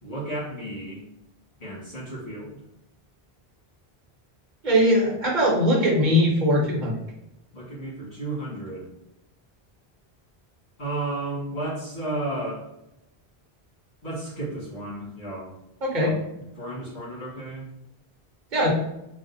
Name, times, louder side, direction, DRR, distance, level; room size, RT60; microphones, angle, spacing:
voice 1, 0.0-1.0 1.6-2.6 7.5-8.9 10.8-12.7 14.0-15.6 16.0-17.7, right 2 dB, 85° left, -8 dB, 2.0 m, -33 dB
voice 2, 4.6-7.0 15.8-16.1 18.5-18.7, equal, 50° right, -3 dB, 1.1 m, -21 dB
4.0 x 2.3 x 2.7 m, 0.86 s
omnidirectional pair, 1.1 m